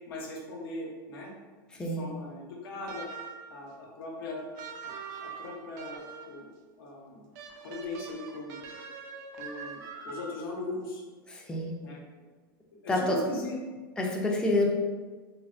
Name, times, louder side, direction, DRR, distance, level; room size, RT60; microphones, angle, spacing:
voice 1, 0.1-1.3 1.7-3.1 3.5-4.4 5.2-6.5 6.8-7.3 7.6-8.6 9.4-11.0 11.8-12.0 12.8-13.8, left 2 dB, 80° left, -2 dB, 0.8 m, -39 dB
sound 1, 2.9-3.6 4.6-6.4 7.3-10.5, right 5 dB, 60° right, 0.4 m, -43 dB
voice 2, 11.3-11.7 12.9-13.1 14.0-14.7, left 1 dB, 5° left, -1 dB, 0.4 m, -27 dB
3.3 x 2.1 x 2.5 m, 1.3 s
hypercardioid pair, 105°, 12 cm